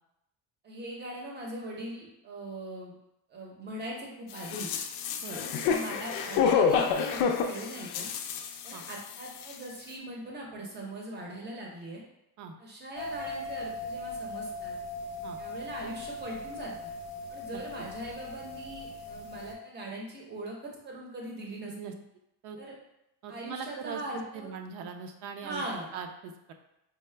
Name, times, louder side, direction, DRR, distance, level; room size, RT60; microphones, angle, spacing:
voice 1, 0.6-2.9 3.3-4.7 5.3-8.1 8.6-12.0 12.6-14.7 15.4-16.9 17.3-22.0 22.6-22.7 23.3-24.5 25.4-25.9, right 1 dB, 25° right, -1 dB, 0.7 m, -40 dB
sound 1, 4.4-9.2 9.4-9.5, left 6 dB, 90° left, 0.5 m, -28 dB
sound 2, 13.0-19.5, left 2 dB, 40° left, 0.5 m, -39 dB
voice 2, 23.2-25.6 25.9-26.5, right 6 dB, 70° right, 5 dB, 0.6 m, -41 dB
4.6 x 2.1 x 3.2 m, 0.85 s
cardioid pair, 165°, 41 cm